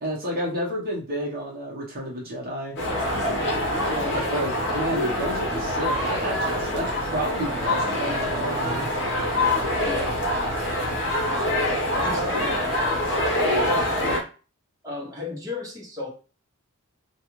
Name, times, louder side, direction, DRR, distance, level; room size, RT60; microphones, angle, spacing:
voice 1, 0.0-2.8 4.1-8.9, equal, 45° right, -3 dB, 0.9 m, -30 dB
sound 1, 2.8-14.2, left 1 dB, 55° left, 0.8 m, -25 dB
voice 2, 3.9-4.2 9.8-10.2 11.9-13.9 14.8-16.1, left 3 dB, 15° right, -3 dB, 0.9 m, -35 dB
2.4 x 2.3 x 3.0 m, 0.35 s
head